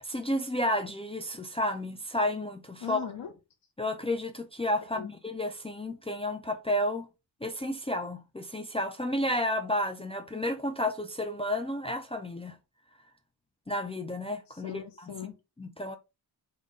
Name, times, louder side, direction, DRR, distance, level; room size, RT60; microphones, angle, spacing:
voice 1, 0.0-3.0 3.8-7.1 7.4-12.6 13.7-14.8 15.6-16.0, left 1 dB, 15° left, 0.4 m, -31 dB
voice 2, 2.8-3.3 4.9-5.1 14.5-15.3, left 9 dB, 75° left, 0.7 m, -39 dB
3.7 x 2.2 x 3.7 m
wide cardioid pair, 95°, 43 cm